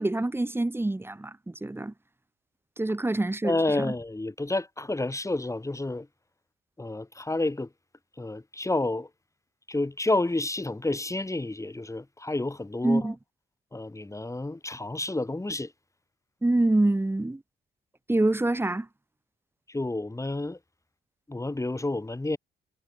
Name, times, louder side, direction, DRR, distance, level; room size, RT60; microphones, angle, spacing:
voice 1, 0.0-1.9 2.8-3.9 12.8-13.1 16.4-17.4 18.1-18.9, right 2 dB, 10° right, 1.2 m, -26 dB
voice 2, 3.4-6.1 6.8-7.7 8.2-9.1 9.7-13.1 13.7-15.7 19.7-20.6 21.3-22.4, left 2 dB, 15° left, 5.2 m, -30 dB
cardioid pair, 95°, 20 cm